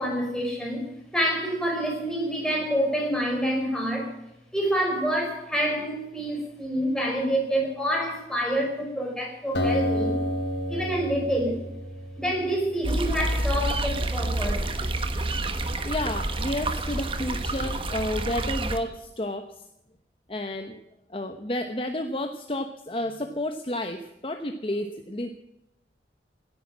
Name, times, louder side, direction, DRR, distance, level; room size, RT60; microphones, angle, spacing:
voice 1, 0.0-4.1 4.5-10.2 10.7-11.6 12.2-14.7, equal, 5° left, 0 dB, 4.9 m, -27 dB
Acoustic guitar, 9.5-13.1, left 1 dB, 80° left, 3.0 m, -29 dB
sound 1, 12.8-18.8, right 2 dB, 30° right, 1.3 m, -28 dB
voice 2, 15.8-19.7 20.3-20.8 21.1-25.3, left 1 dB, 30° left, 6 dB, 0.9 m, -31 dB
17.0 x 10.0 x 7.5 m, 0.85 s
head